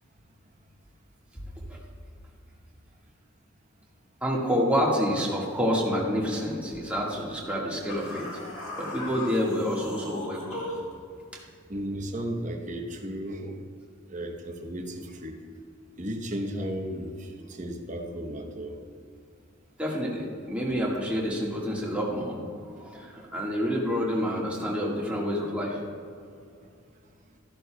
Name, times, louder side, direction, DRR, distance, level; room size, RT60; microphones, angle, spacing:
voice 1, 4.2-8.4 8.8-10.6 19.8-22.4 22.7-25.8, equal, 5° right, -4 dB, 1.6 m, -28 dB
sound 1, 7.9-10.9, left 1 dB, 80° left, 1.8 m, -38 dB
voice 2, 11.7-13.6 14.1-15.3 16.0-18.8, equal, 35° right, 3 dB, 0.9 m, -34 dB
13.0 x 10.5 x 2.2 m, 2.3 s
head